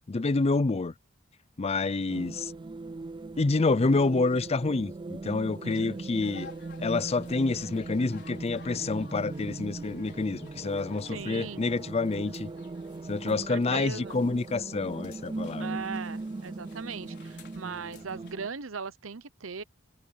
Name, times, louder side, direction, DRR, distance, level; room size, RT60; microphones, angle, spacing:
voice 1, 0.1-0.9 1.6-2.5 3.4-6.5 6.8-12.5 13.1-15.8, left 3 dB, 30° left, 0.5 m, -28 dB
sound 1, 2.1-18.5, right 3 dB, 25° right, 0.4 m, -39 dB
voice 2, 5.6-6.0 11.1-11.7 13.2-14.2 15.6-19.6, right 5 dB, 80° right, 0.9 m, -39 dB
sound 2, 6.2-18.3, left 4 dB, 60° left, 4.6 m, -54 dB
head